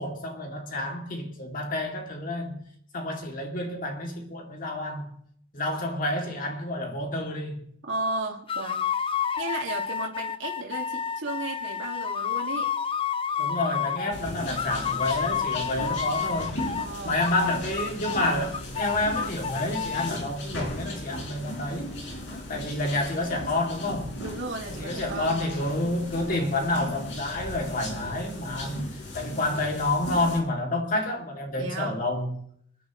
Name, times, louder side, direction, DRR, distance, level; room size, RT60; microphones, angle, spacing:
voice 1, 0.0-2.6 2.9-5.2 5.5-7.6 13.4-16.6 17.0-21.9 22.3-24.2 24.7-32.4, left 2 dB, 45° left, 2.6 m, -29 dB
voice 2, 7.9-8.8 9.4-12.7 15.7-16.1 16.8-17.2 24.2-25.4 31.6-32.0, right 2 dB, 80° right, 2.2 m, -34 dB
sound 1, 8.5-14.2 14.5-16.9 17.2-20.1, left 7 dB, 30° left, 0.5 m, -30 dB
sound 2, 14.1-30.4, left 1 dB, 65° left, 4.6 m, -37 dB
27.5 x 10.5 x 3.2 m
head